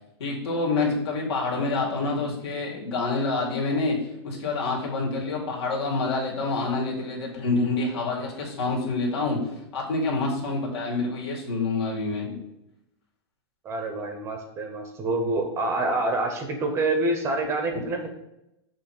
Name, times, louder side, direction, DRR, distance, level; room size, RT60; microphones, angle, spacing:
voice 1, 0.2-4.0 4.2-9.4 9.7-12.4, left 3 dB, 65° left, -2 dB, 2.3 m, -27 dB
voice 2, 13.6-18.1, right 2 dB, 20° right, 4 dB, 0.7 m, -27 dB
6.6 x 3.1 x 5.8 m, 0.86 s
supercardioid pair, 155°, 14 cm